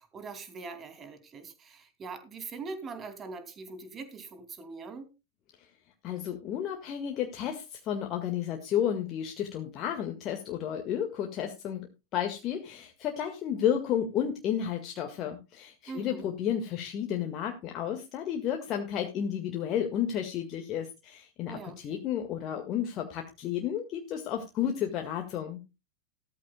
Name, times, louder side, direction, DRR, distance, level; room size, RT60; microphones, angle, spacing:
voice 1, 0.0-5.1 15.9-16.3 21.5-22.0, right 4 dB, 25° right, 9 dB, 2.6 m, -42 dB
voice 2, 6.0-11.9 12.1-25.6, left 9 dB, 35° left, 3 dB, 1.8 m, -32 dB
15.0 x 13.5 x 2.3 m, 0.27 s
figure-of-eight pair, 90°, 0 cm